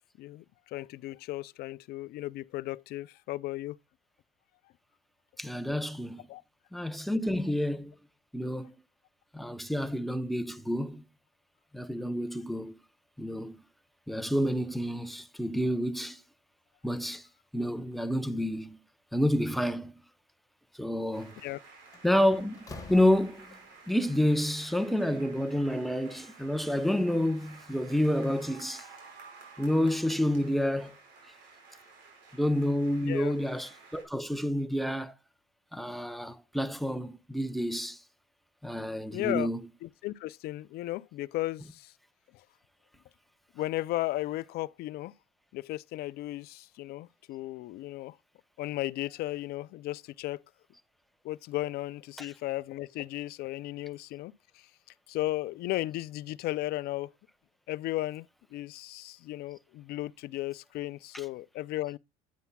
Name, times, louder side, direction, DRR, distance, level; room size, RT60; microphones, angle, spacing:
voice 1, 0.2-3.8 6.3-6.4 21.4-21.6 33.0-33.3 39.1-39.5 39.8-41.9 43.6-45.1 45.5-48.2 48.6-50.4 51.2-54.3 55.1-57.1 57.7-62.0, left 16 dB, 55° left, 0.5 m, -35 dB
voice 2, 5.4-6.2 6.7-7.9 8.3-8.7 9.3-11.0 11.7-12.8 13.2-13.6 14.1-16.2 16.8-17.3 17.5-18.8 19.1-19.9 20.7-21.4 22.0-22.6 22.9-23.6 23.9-28.8 29.6-31.0 32.3-35.1 35.7-38.0 38.6-39.6 52.2-52.3 61.1-61.2, equal, ahead, 0.7 m, -29 dB
sound 1, 21.1-34.0, right 4 dB, 65° right, 5.0 m, -53 dB
Slam, 21.3-21.5 21.9-23.8, left 3 dB, 20° left, 1.4 m, -47 dB
9.5 x 9.4 x 2.3 m
supercardioid pair, 115°, 19 cm